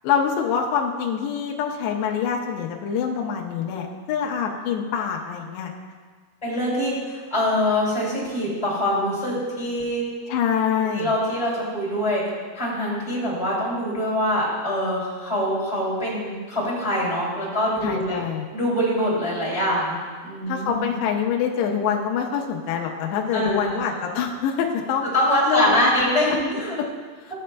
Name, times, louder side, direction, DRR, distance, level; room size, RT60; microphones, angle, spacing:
voice 1, 0.0-5.7 10.3-11.1 17.8-18.5 20.5-25.1 25.5-25.9, left 7 dB, 80° left, 0 dB, 2.5 m, -25 dB
voice 2, 6.4-10.0 10.9-12.2 12.5-18.2 18.5-20.9 23.3-23.9 25.1-26.8, equal, 10° left, -7 dB, 1.7 m, -24 dB
14.0 x 8.5 x 2.3 m, 1.5 s
omnidirectional pair, 5.6 m